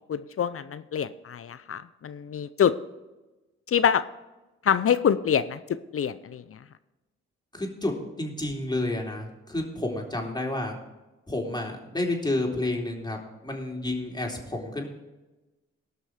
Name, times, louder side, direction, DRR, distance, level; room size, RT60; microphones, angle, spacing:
voice 1, 0.1-2.7 3.7-4.0 4.6-5.6 5.9-6.4, left 8 dB, 45° left, 14 dB, 0.7 m, -25 dB
voice 2, 7.5-10.8 11.3-14.9, left 2 dB, 15° left, 1 dB, 3.6 m, -30 dB
18.0 x 6.1 x 5.0 m, 1.1 s
hypercardioid pair, 45°, 31 cm